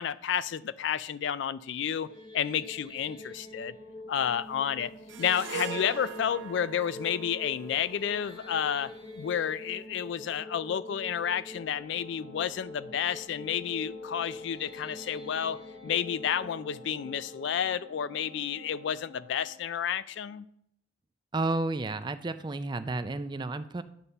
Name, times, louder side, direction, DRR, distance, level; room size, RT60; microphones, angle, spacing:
voice 1, 0.0-2.1 2.3-3.7 4.1-4.9 5.2-20.5, left 8 dB, 60° left, 0.3 m, -31 dB
sound 1, 2.0-19.0, left 2 dB, 20° left, 0.8 m, -45 dB
sound 2, 5.1-9.7, right 5 dB, 65° right, 0.8 m, -42 dB
Wind instrument woodwind instrument, 11.5-19.7, left 5 dB, 80° left, 1.8 m, -53 dB
voice 2, 21.3-23.8, right 2 dB, 20° right, 0.3 m, -31 dB
9.2 x 4.1 x 6.7 m
head